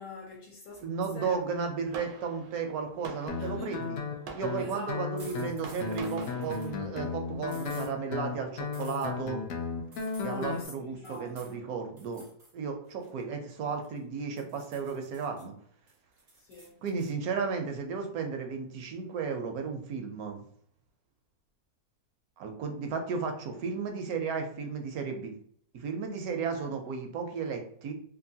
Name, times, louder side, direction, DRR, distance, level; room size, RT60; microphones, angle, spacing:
voice 1, 0.0-0.8 1.1-1.5 3.4-3.9 4.6-4.9 10.2-11.6 16.4-16.8 26.2-26.8, left 4 dB, 65° left, 1.0 m, -45 dB
Fireworks, 0.7-10.1, right 4 dB, 90° right, 1.2 m, -49 dB
voice 2, 0.8-4.0 4.3-9.4 10.2-12.2 12.5-15.5 16.8-20.4 22.4-25.3 25.7-27.9, right 5 dB, 70° right, 1.0 m, -34 dB
Guitar, 3.3-10.6, left 5 dB, 85° left, 0.6 m, -35 dB
sound 1, 5.2-6.7 7.5-7.9 8.7-9.1 9.9-10.5 11.0-11.6 12.0-12.5 12.9-14.0 14.4-15.4 15.9-17.1, right 2 dB, 55° right, 0.4 m, -54 dB
2.9 x 2.5 x 2.6 m
omnidirectional pair, 1.8 m